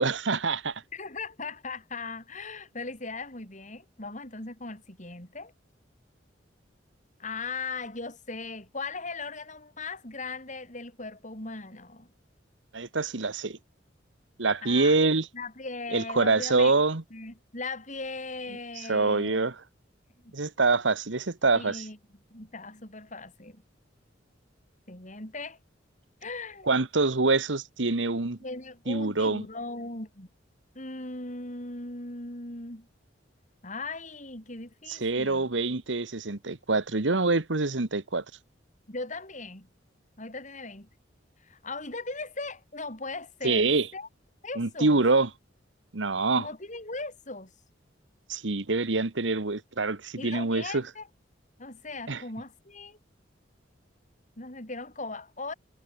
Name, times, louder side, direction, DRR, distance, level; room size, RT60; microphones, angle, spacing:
voice 1, 0.0-0.8 12.7-13.6 14.4-15.3 15.9-17.0 18.9-19.6 20.3-21.8 26.7-28.4 28.9-29.4 34.9-38.2 43.4-43.9 44.6-45.3 45.9-46.5 48.3-50.8 52.1-52.2, right 3 dB, 85° right, 1.4 m, -25 dB
voice 2, 0.9-5.5 7.2-12.1 14.6-15.0 15.3-16.7 17.1-19.4 20.2-20.3 21.5-22.0 22.3-23.6 24.9-25.6 26.2-26.7 28.4-30.3 30.7-32.9 33.6-35.5 38.9-39.7 40.2-40.9 41.4-44.1 44.4-45.0 46.4-47.5 50.2-51.1 51.6-53.0 54.4-55.5, left 3 dB, 40° left, 7.5 m, -38 dB
head